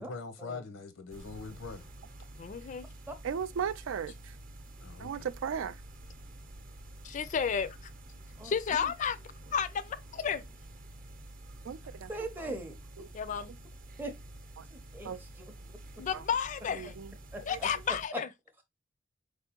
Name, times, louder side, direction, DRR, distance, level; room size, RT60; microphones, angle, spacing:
voice 1, 0.0-1.9 4.8-5.3 8.1-8.3, left 4 dB, 85° left, 0.7 m, -43 dB
sound 1, 1.1-18.1, right 1 dB, 45° right, 0.7 m, -49 dB
voice 2, 2.4-2.9 7.0-7.7 8.4-9.2 9.5-10.4 13.1-13.5 16.0-17.0 17.4-18.3, left 7 dB, 40° left, 0.3 m, -32 dB
voice 3, 3.2-4.3 5.0-5.8 11.6-12.1 12.4-12.5 13.0-13.1 14.6-14.7 15.0-15.2 16.1-16.2 16.7-17.1 17.5-17.6, right 7 dB, 85° right, 0.4 m, -36 dB
voice 4, 8.4-8.9 12.1-12.8 14.0-14.1 14.7-15.5 17.3-17.7 18.1-18.2, right 1 dB, 10° right, 0.5 m, -40 dB
4.4 x 3.4 x 2.8 m
head